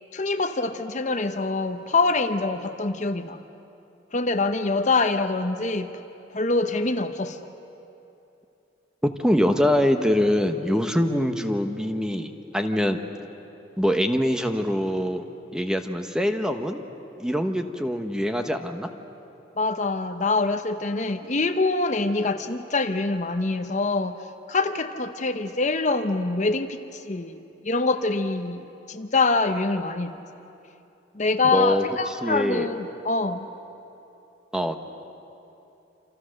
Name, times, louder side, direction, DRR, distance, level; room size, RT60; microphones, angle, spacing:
voice 1, 0.1-3.4 4.1-5.9 6.3-7.4 19.6-24.2 24.5-27.4 27.6-30.1 31.2-33.5, left 3 dB, 40° left, 8 dB, 0.9 m, -25 dB
voice 2, 9.0-13.0 13.8-15.2 15.5-16.8 17.2-18.9 31.5-32.7 34.5-34.8, equal, 5° right, 6 dB, 1.0 m, -24 dB
28.5 x 27.0 x 6.5 m, 2.9 s
head